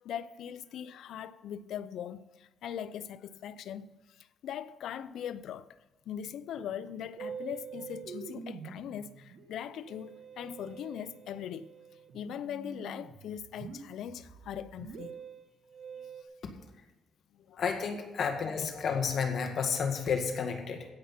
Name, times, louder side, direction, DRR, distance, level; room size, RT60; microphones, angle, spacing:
voice 1, 0.0-3.9 4.2-5.7 6.1-11.7 12.1-15.2 17.5-17.6, left 9 dB, 75° left, 0.6 m, -40 dB
Musical instrument, 7.2-16.2, right 6 dB, 75° right, 1.3 m, -46 dB
voice 2, 17.6-20.9, left 6 dB, 60° left, 1.9 m, -31 dB
16.0 x 5.8 x 5.8 m
cardioid pair, 90°, 0 cm